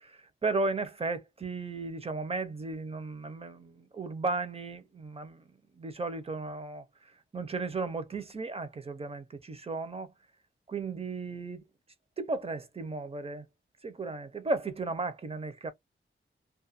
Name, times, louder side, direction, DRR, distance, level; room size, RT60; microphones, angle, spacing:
voice 1, 0.0-6.8 7.3-10.1 10.7-11.6 12.2-13.4 13.8-15.7, right 3 dB, 30° right, 0.6 m, -35 dB
2.3 x 2.2 x 2.6 m
wide cardioid pair, 75°, 21 cm